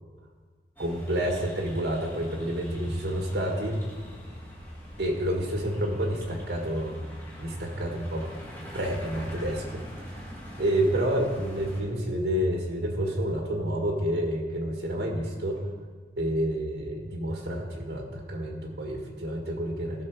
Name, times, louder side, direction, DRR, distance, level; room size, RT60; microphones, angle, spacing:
sound 1, 0.8-11.8, equal, 10° left, 1.9 m, -42 dB
voice 1, 0.8-3.8 5.0-7.0 7.4-8.3 8.7-10.2 10.6-15.7 16.2-20.0, right 1 dB, 70° right, 1 dB, 1.7 m, -29 dB
16.0 x 6.2 x 4.7 m, 1.5 s
head